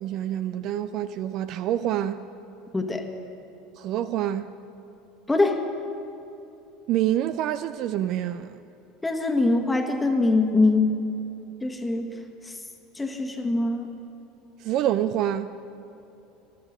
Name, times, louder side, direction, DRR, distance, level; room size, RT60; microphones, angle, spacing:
voice 1, 0.0-2.2 3.8-4.5 6.9-8.5 14.6-15.5, right 11 dB, 50° right, 0.4 m, -26 dB
voice 2, 2.7-3.0 5.3-5.6 9.0-11.0 11.6-12.1 12.4-12.5 12.9-13.9, left 2 dB, 10° left, 1.4 m, -23 dB
13.5 x 12.5 x 6.2 m
figure-of-eight pair, 70°, 0 cm